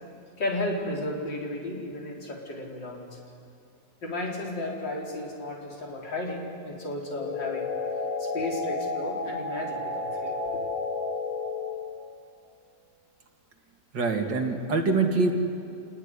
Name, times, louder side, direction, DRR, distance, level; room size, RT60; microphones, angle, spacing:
voice 1, 0.4-3.2 4.0-7.7 8.2-10.6, left 1 dB, 85° left, -1 dB, 4.7 m, -33 dB
sound 1, 7.0-12.0, left 3 dB, 25° left, 2.3 m, -32 dB
voice 2, 13.9-15.3, right 3 dB, 80° right, 3 dB, 2.9 m, -24 dB
27.0 x 20.0 x 9.9 m, 2.6 s
omnidirectional pair, 1.9 m